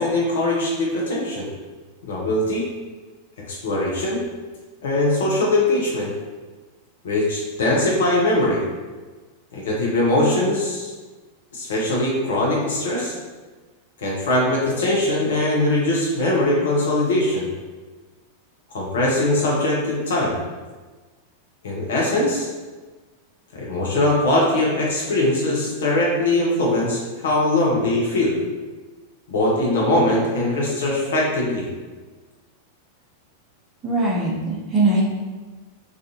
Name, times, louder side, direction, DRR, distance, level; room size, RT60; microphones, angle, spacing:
voice 1, 0.0-1.5 2.1-2.7 3.5-4.2 4.8-6.1 7.0-8.6 9.5-10.9 11.5-13.2 14.0-17.5 18.7-20.3 21.6-22.5 23.5-28.4 29.3-31.7, left 1 dB, 60° left, -3 dB, 0.6 m, -21 dB
voice 2, 33.8-35.0, right 2 dB, 25° right, -5 dB, 0.7 m, -21 dB
2.4 x 2.4 x 2.6 m, 1.3 s
figure-of-eight pair, 90°, 0 cm